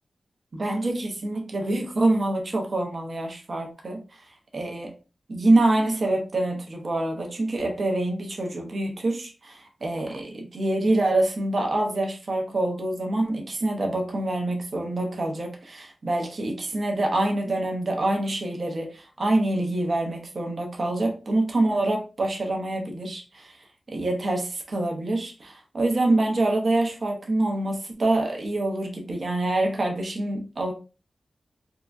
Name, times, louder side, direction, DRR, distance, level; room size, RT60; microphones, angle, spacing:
voice 1, 0.5-4.2 4.5-5.0 5.3-23.6 23.9-30.7, right 2 dB, 55° right, 0.8 m, -26 dB
3.6 x 2.1 x 2.5 m
cardioid pair, 60°, 0 cm